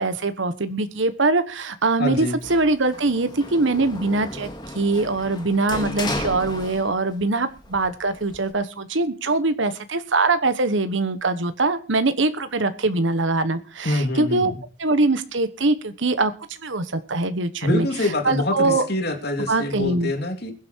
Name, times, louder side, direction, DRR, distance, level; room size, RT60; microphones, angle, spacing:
voice 1, 0.0-14.5 14.8-17.9 18.2-18.9 19.5-20.1, right 3 dB, 70° right, 11 dB, 1.2 m, -23 dB
voice 2, 2.0-2.4 13.8-14.6 17.6-20.5, left 2 dB, 55° left, 5 dB, 2.9 m, -25 dB
Sliding door, 2.4-7.2 7.6-8.5, left 1 dB, 20° left, 2.1 m, -34 dB
21.5 x 8.4 x 4.5 m, 0.34 s
head